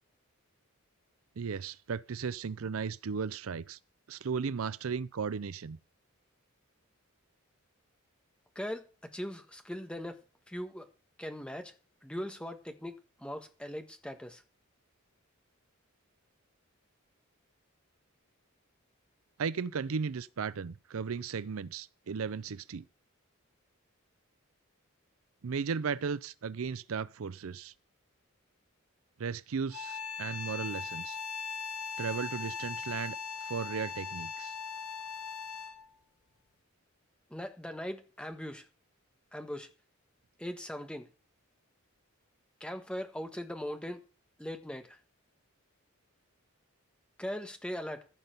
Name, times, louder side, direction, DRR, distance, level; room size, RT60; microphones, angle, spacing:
voice 1, 1.4-3.8 4.1-5.8 19.4-22.9 25.4-27.7 29.2-31.2 32.0-34.5, right 5 dB, 75° right, 0.5 m, -36 dB
voice 2, 8.5-8.9 9.1-10.2 10.5-10.9 11.2-11.7 12.0-14.4 37.3-38.7 39.3-39.7 40.4-41.1 42.6-44.0 44.4-45.0 47.2-48.1, equal, 5° left, 1.4 m, -40 dB
sound 1, 29.7-35.9, left 6 dB, 85° left, 1.1 m, -39 dB
15.0 x 5.6 x 6.7 m
head